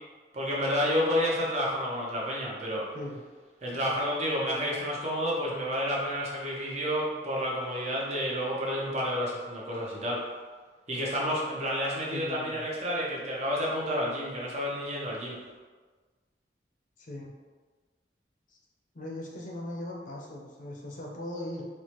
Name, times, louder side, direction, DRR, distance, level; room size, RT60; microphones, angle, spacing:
voice 1, 0.3-2.8 3.6-10.2 10.9-15.4, equal, 40° right, -4 dB, 0.7 m, -30 dB
voice 2, 12.1-12.6 17.0-17.3 18.5-18.6 18.9-21.6, left 1 dB, 45° left, -1 dB, 0.5 m, -39 dB
4.3 x 2.1 x 3.0 m, 1.4 s
head